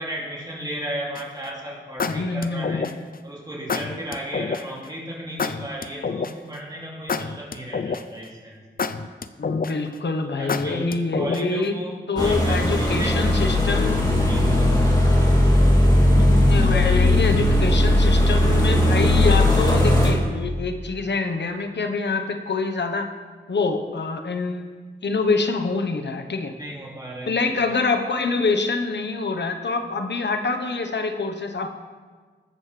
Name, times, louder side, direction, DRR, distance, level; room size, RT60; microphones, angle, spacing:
voice 1, 0.0-2.9 3.2-8.9 10.2-13.2 14.2-14.8 16.7-16.9 26.6-27.5, right 1 dB, 20° right, -4 dB, 2.8 m, -34 dB
sound 1, 1.1-1.4 2.0-3.1 3.7-4.6 5.4-6.5 7.1-8.2 8.8-9.9 10.5-11.6, left 5 dB, 50° left, 0.6 m, -28 dB
voice 2, 2.1-2.9 9.4-11.8 12.1-14.0 16.2-23.1 23.5-24.7 25.0-26.5 27.3-31.7, left 3 dB, 65° left, 6 dB, 1.2 m, -25 dB
sound 2, 12.2-20.1, left 1 dB, 20° left, 2.8 m, -18 dB
20.5 x 7.7 x 3.4 m, 1.5 s
cardioid pair, 50°, 20 cm